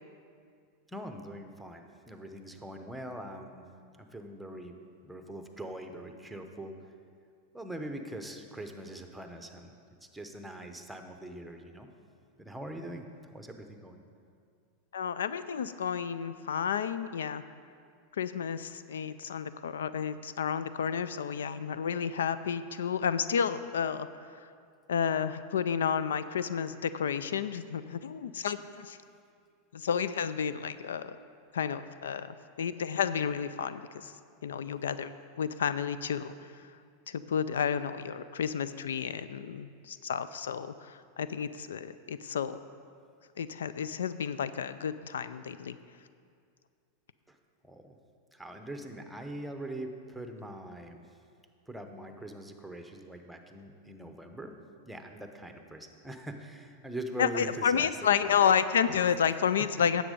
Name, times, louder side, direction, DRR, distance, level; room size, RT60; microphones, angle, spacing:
voice 1, 0.9-3.7 4.0-4.8 5.1-6.7 7.5-9.7 10.0-11.9 12.4-13.1 13.3-14.0 47.3-47.4 47.6-48.0 48.3-51.0 51.7-54.5 54.8-58.5 58.8-59.2 59.7-59.8, right 1 dB, 5° right, 5 dB, 0.9 m, -42 dB
voice 2, 14.9-17.4 18.2-24.1 24.9-29.0 29.7-31.2 31.5-34.1 34.4-36.3 37.1-42.6 43.4-45.8 57.2-60.0, left 7 dB, 90° left, 14 dB, 0.3 m, -31 dB
10.0 x 7.4 x 5.3 m, 2.3 s
hypercardioid pair, 115°, 0 cm